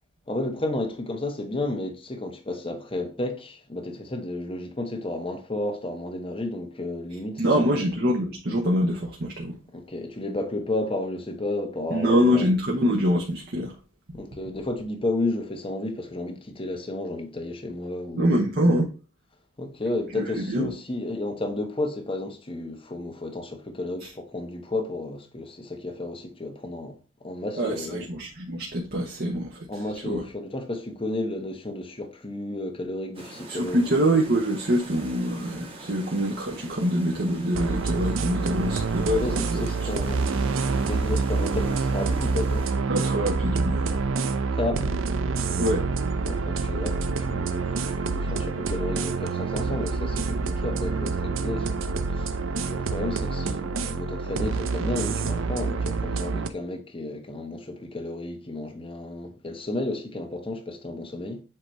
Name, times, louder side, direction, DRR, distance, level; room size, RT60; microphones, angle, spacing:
voice 1, 0.3-7.8 9.7-12.5 14.1-18.3 19.6-28.0 29.7-33.9 38.5-38.6 39.1-40.2 40.8-42.7 44.5-45.0 46.2-52.3 52.7-61.4, left 2 dB, 25° left, 1.0 m, -32 dB
voice 2, 7.4-9.6 11.9-13.7 14.1-14.2 18.1-18.9 20.1-20.7 24.0-24.1 27.6-30.2 33.5-39.6 42.9-44.0 45.6-45.8, equal, 50° right, 1.0 m, -25 dB
sound 1, 33.1-42.7, right 2 dB, 30° right, 1.4 m, -43 dB
sound 2, 37.5-56.5, right 4 dB, 75° right, 0.6 m, -27 dB
7.6 x 2.9 x 4.5 m
head